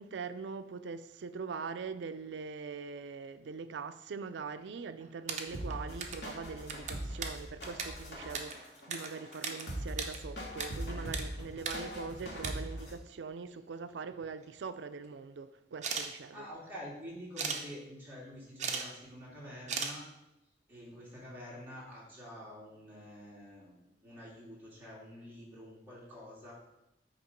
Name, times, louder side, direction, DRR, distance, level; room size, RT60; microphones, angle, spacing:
voice 1, 0.0-16.5, right 5 dB, 85° right, 0.4 m, -42 dB
sound 1, 5.0-6.3 6.6-9.6 9.9-10.7 10.9-11.2 11.6-11.8 12.2-12.5 13.5-13.6 14.0-14.6 15.7-16.1 17.4-17.6 18.4-18.9 19.1-19.2 19.7-19.9, right 6 dB, 40° right, 0.7 m, -37 dB
sound 2, 5.5-13.0, equal, 70° left, 1.7 m, -41 dB
voice 2, 16.3-20.0 20.7-26.5, equal, 10° right, 2.2 m, -48 dB
8.2 x 3.0 x 5.1 m
head